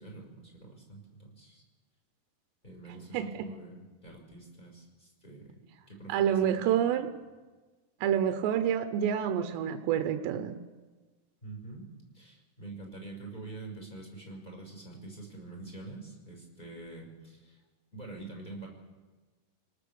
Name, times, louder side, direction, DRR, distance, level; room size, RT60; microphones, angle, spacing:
voice 1, 0.0-1.6 2.6-5.6 5.9-6.6 6.9-7.1 11.4-11.9 12.1-17.6 17.9-18.7, right 2 dB, 10° left, 0 dB, 5.1 m, -46 dB
voice 2, 3.1-3.5 6.1-7.1 8.0-10.6, right 9 dB, 85° right, 8 dB, 3.1 m, -28 dB
28.5 x 19.0 x 7.0 m, 1.3 s
omnidirectional pair, 4.9 m